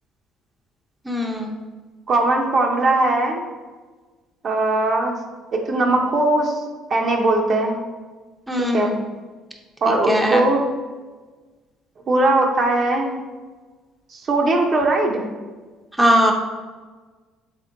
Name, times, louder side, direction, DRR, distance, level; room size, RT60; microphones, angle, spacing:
voice 1, 1.0-1.5 8.5-8.9 9.9-10.4 16.0-16.3, equal, 10° right, 0 dB, 0.8 m, -20 dB
voice 2, 2.1-3.4 4.4-5.2 5.5-6.6 6.9-7.8 8.6-8.9 9.8-10.7 12.1-13.1 14.1-15.2, right 2 dB, 50° right, 1 dB, 0.7 m, -19 dB
3.6 x 3.5 x 3.9 m, 1.3 s
supercardioid pair, 65°, 0 cm